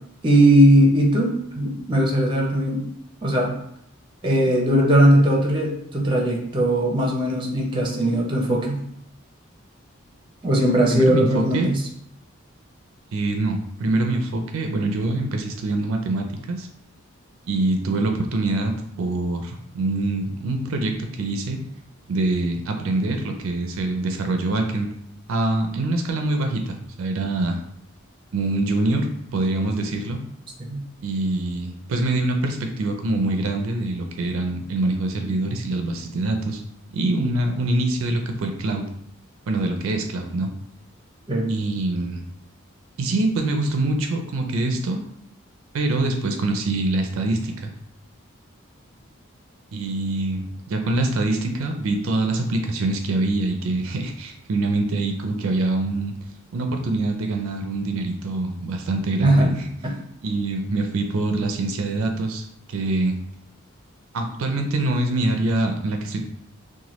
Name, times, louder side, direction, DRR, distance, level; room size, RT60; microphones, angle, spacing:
voice 1, 0.2-2.8 3.2-3.5 4.2-8.8 10.4-11.8 30.7-30.8 41.3-41.5 59.2-59.5, right 1 dB, 25° right, -1 dB, 0.5 m, -19 dB
voice 2, 10.9-11.7 13.1-16.7 17.5-18.7 19.0-21.6 22.1-24.9 25.3-27.6 28.3-29.1 29.3-30.2 31.0-36.6 36.9-38.8 39.5-40.5 41.5-42.2 43.0-45.1 45.7-47.7 49.7-56.1 56.5-59.7 60.2-63.2 64.1-66.2, right 2 dB, 75° right, 4 dB, 0.4 m, -24 dB
2.9 x 2.2 x 3.0 m, 0.74 s
head